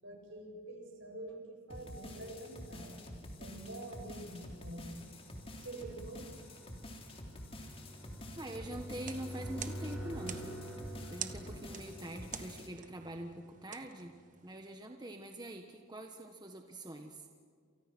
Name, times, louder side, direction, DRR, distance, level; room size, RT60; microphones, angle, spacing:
voice 1, 0.0-3.0 3.4-5.0 5.6-6.3, right 1 dB, 65° right, 3 dB, 7.1 m, -46 dB
sound 1, 1.7-12.7, left 1 dB, 25° left, 3.5 m, -48 dB
sound 2, 3.0-13.7, equal, 5° right, 6.2 m, -48 dB
voice 2, 8.4-10.7 11.1-14.2 14.4-17.3, right 1 dB, 20° right, 4 dB, 1.4 m, -44 dB
sound 3, 9.0-14.7, right 9 dB, 40° right, 1.3 m, -49 dB
29.0 x 28.5 x 6.2 m, 2.2 s
head